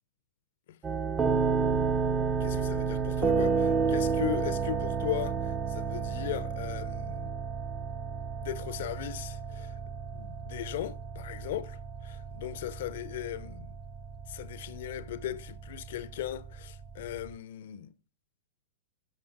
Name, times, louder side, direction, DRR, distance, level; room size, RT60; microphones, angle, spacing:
sound 1, 0.8-17.3, right 5 dB, 15° right, 0.4 m, -31 dB
voice 1, 2.4-7.4 8.4-9.7 10.1-13.7 14.3-17.9, left 13 dB, 50° left, 0.4 m, -38 dB
12.0 x 6.9 x 2.4 m
figure-of-eight pair, 100°, 0 cm